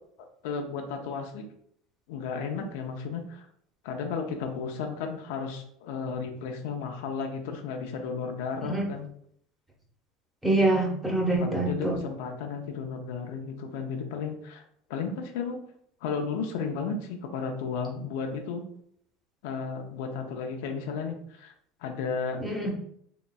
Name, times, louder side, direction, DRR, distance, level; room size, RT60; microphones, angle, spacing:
voice 1, 0.4-1.5 2.1-3.5 3.8-9.1 11.4-14.6 14.9-15.6 16.0-18.6 19.4-21.5 21.8-22.4, left 5 dB, 75° left, 4 dB, 0.6 m, -33 dB
voice 2, 10.4-12.0 22.4-22.7, right 2 dB, 10° right, 0 dB, 1.0 m, -25 dB
3.7 x 3.0 x 2.2 m, 0.66 s
supercardioid pair, 100°, 0 cm